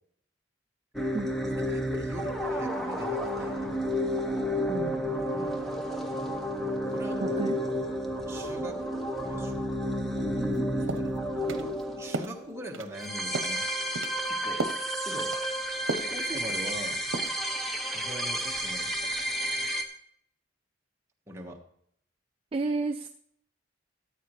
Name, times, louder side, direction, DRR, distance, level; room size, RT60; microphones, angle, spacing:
sound 1, 0.9-19.8, equal, ahead, 0.9 m, -31 dB
voice 1, 1.7-3.7 5.3-5.8 6.9-7.4 8.3-8.8 9.2-9.7 10.3-13.6 14.3-14.6 15.0-15.4 15.8-17.0 17.9-19.1 21.3-21.6, right 1 dB, 15° right, 0 dB, 1.3 m, -42 dB
voice 2, 7.2-7.7 22.5-23.1, right 3 dB, 30° right, 7 dB, 0.4 m, -31 dB
sound 2, 10.4-10.6 10.9-11.1 11.5-11.7 12.1-12.4 12.7-13.1 13.3-13.6 14.0-14.2 14.6-14.9 15.2-15.4 15.9-16.2 16.5-16.8 17.1-17.4, right 3 dB, 85° right, 0.8 m, -34 dB
13.5 x 8.7 x 3.2 m, 0.68 s
head